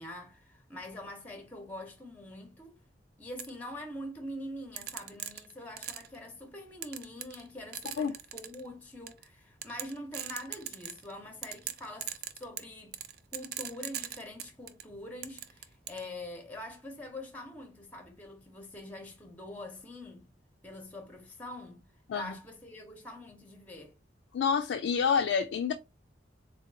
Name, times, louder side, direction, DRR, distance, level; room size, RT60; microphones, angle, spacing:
voice 1, 0.0-2.8 3.2-13.0 13.3-20.3 20.6-21.8 22.1-23.9, left 1 dB, 10° left, 0.7 m, -44 dB
sound 1, 3.4-3.5 4.8-6.2 6.8-7.5 7.7-8.6 9.1-9.2 9.6-11.1 11.4-14.8 15.2-16.0, right 10 dB, 55° right, 0.3 m, -39 dB
voice 2, 24.3-25.7, left 6 dB, 85° left, 0.3 m, -28 dB
3.7 x 2.8 x 2.6 m
head